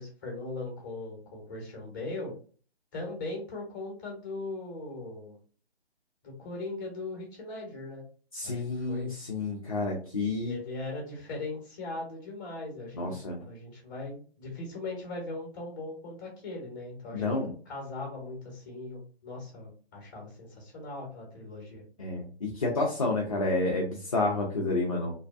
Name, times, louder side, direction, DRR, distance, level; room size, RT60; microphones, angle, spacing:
voice 1, 0.0-2.3 2.9-5.4 6.2-8.1 8.4-9.1 10.5-13.2 13.4-17.2 17.7-21.8, left 2 dB, 20° left, -1 dB, 0.8 m, -39 dB
voice 2, 8.3-10.6 12.9-13.4 17.1-17.5 22.0-25.1, left 2 dB, 35° left, -2 dB, 0.4 m, -30 dB
2.6 x 2.2 x 2.3 m, 0.41 s
figure-of-eight pair, 150°, 32 cm